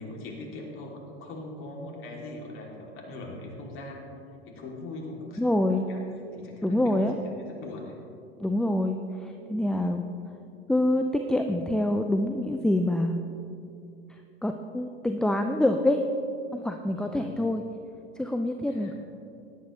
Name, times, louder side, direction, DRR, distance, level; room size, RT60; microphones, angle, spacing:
voice 1, 0.0-4.0 4.4-5.6 5.9-6.0 6.3-8.0 16.9-17.5 18.7-19.0, left 2 dB, 40° left, -1 dB, 3.1 m, -41 dB
voice 2, 5.4-5.9 6.6-7.2 8.4-10.1 10.7-13.2 14.4-16.0 16.5-17.6 18.2-18.9, left 1 dB, ahead, 5 dB, 0.4 m, -26 dB
16.5 x 10.5 x 3.3 m, 2.6 s
hypercardioid pair, 90°, 32 cm